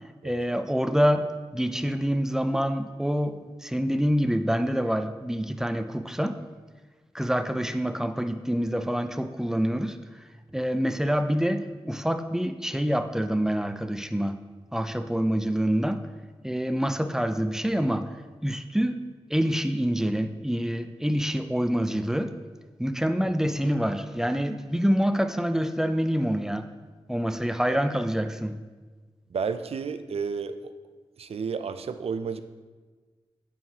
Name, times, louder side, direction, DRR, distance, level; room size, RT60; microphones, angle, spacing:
voice 1, 0.2-1.3 1.5-6.4 7.1-10.0 10.5-14.4 14.7-16.0 16.4-18.1 18.4-19.0 19.3-22.3 22.8-26.7 27.1-28.6, equal, 5° right, 9 dB, 0.4 m, -26 dB
voice 2, 29.3-30.7 31.2-32.4, right 5 dB, 80° right, 10 dB, 0.4 m, -31 dB
9.2 x 5.6 x 2.9 m, 1.4 s
wide cardioid pair, 70°, 10 cm